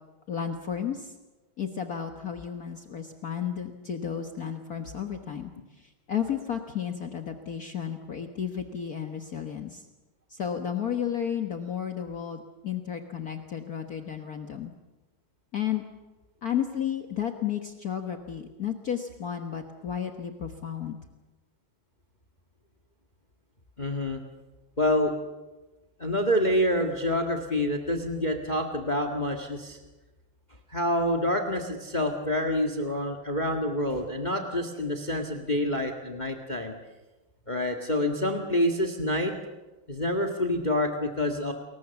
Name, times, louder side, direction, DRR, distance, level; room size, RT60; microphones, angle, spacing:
voice 1, 0.3-1.1 1.6-9.9 10.3-14.7 15.5-15.8 16.4-21.0, left 8 dB, 45° left, 5 dB, 1.7 m, -33 dB
voice 2, 23.8-24.2 24.8-25.1 26.0-29.8 30.7-36.7 37.5-39.3 39.9-41.5, left 1 dB, 20° left, 6 dB, 1.8 m, -27 dB
29.5 x 21.5 x 7.2 m, 1.1 s
omnidirectional pair, 2.3 m